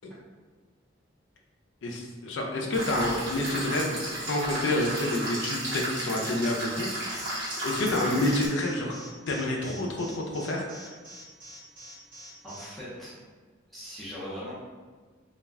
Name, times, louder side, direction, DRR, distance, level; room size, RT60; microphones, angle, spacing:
voice 1, 1.8-6.9 7.6-8.9 9.3-10.9, left 1 dB, 70° left, 0 dB, 0.4 m, -28 dB
sound 1, 2.7-8.5, right 1 dB, 60° right, 1.0 m, -34 dB
Alarm, 7.1-12.7, equal, 40° right, 0.9 m, -46 dB
voice 2, 12.4-13.1 13.7-14.5, equal, ahead, -10 dB, 0.6 m, -39 dB
2.4 x 2.1 x 3.4 m, 1.4 s
head